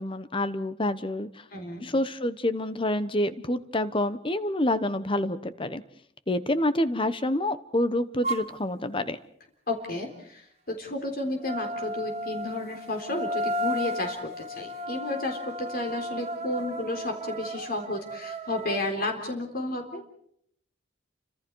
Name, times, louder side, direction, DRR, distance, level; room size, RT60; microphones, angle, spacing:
voice 1, 0.0-1.4 1.8-5.8 6.3-9.2, left 1 dB, 25° left, 13 dB, 1.1 m, -27 dB
voice 2, 1.5-1.9 9.7-20.0, left 2 dB, 50° left, 3 dB, 3.8 m, -32 dB
sound 1, 8.2-8.5 11.4-18.8, equal, 35° right, 1.7 m, -34 dB
29.5 x 25.5 x 4.7 m, 0.68 s
head